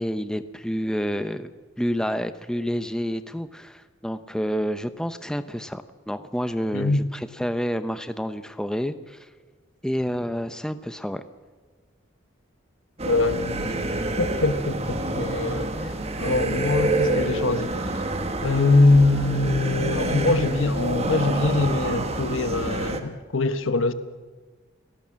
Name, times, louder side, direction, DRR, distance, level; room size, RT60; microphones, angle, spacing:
voice 1, 0.0-1.5 1.8-9.3 9.8-11.2, equal, 5° left, 0.8 m, -29 dB
voice 2, 13.0-13.9 14.2-15.7 16.2-17.9 18.4-23.9, left 2 dB, 80° left, 1.3 m, -23 dB
sound 1, 13.0-23.0, right 2 dB, 30° right, 1.5 m, -27 dB
28.5 x 18.0 x 7.5 m
head